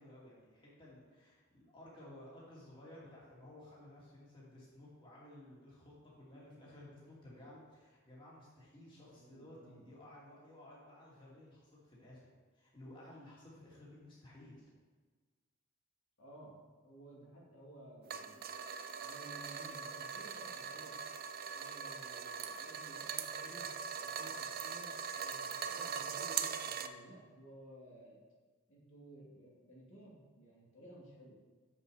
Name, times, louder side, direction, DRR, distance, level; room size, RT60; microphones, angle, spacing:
voice 1, 0.0-14.7, left 1 dB, 25° left, -6 dB, 2.6 m, -56 dB
voice 2, 9.1-9.8 16.2-18.4 19.0-20.9 21.5-23.7 24.0-28.2 28.7-31.4, right 1 dB, 70° left, -5 dB, 2.2 m, -56 dB
sound 1, 18.1-26.9, right 6 dB, 45° right, 0.4 m, -41 dB
7.8 x 7.1 x 4.9 m, 1.4 s
head